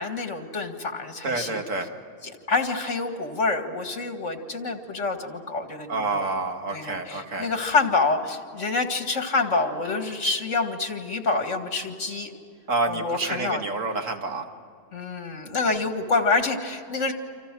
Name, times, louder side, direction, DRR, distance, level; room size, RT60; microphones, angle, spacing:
voice 1, 0.0-1.6 2.2-6.3 6.7-12.3 12.9-13.6 14.9-17.1, left 3 dB, 75° left, 5 dB, 2.4 m, -27 dB
voice 2, 1.2-1.9 5.9-7.5 12.7-14.4, right 3 dB, 85° right, 4 dB, 2.2 m, -28 dB
28.5 x 26.5 x 6.2 m, 2.2 s
omnidirectional pair, 1.3 m